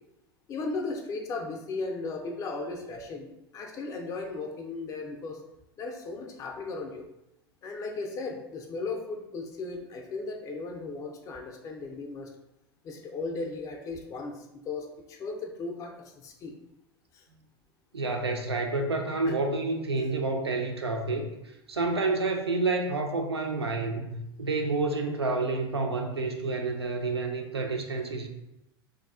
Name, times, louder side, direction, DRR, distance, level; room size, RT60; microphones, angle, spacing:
voice 1, 0.5-5.4 5.8-7.1 7.6-12.3 12.8-16.5 17.1-17.2 19.3-19.4, left 3 dB, 25° left, 2 dB, 0.4 m, -36 dB
voice 2, 17.9-21.3 21.7-24.1 24.4-28.3, right 3 dB, 80° right, 3 dB, 0.4 m, -29 dB
3.5 x 2.3 x 2.3 m, 0.88 s
figure-of-eight pair, 85°, 13 cm